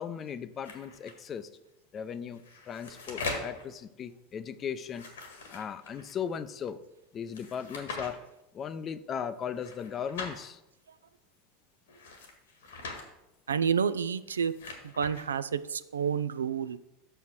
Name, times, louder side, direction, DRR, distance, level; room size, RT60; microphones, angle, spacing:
voice 1, 0.0-1.5 1.9-2.4 2.7-5.0 5.5-6.8 7.1-8.2 8.5-10.6, left 7 dB, 35° left, 14 dB, 0.5 m, -37 dB
sound 1, 0.6-1.1 2.3-3.6 4.8-6.1 7.3-8.1 9.5-10.4 11.9-13.0 14.2-15.3, left 3 dB, 75° left, 1.6 m, -41 dB
voice 2, 13.5-14.5 14.8-16.8, right 7 dB, 80° right, 15 dB, 0.3 m, -29 dB
6.4 x 5.6 x 6.1 m, 0.92 s
hypercardioid pair, 85°, 0 cm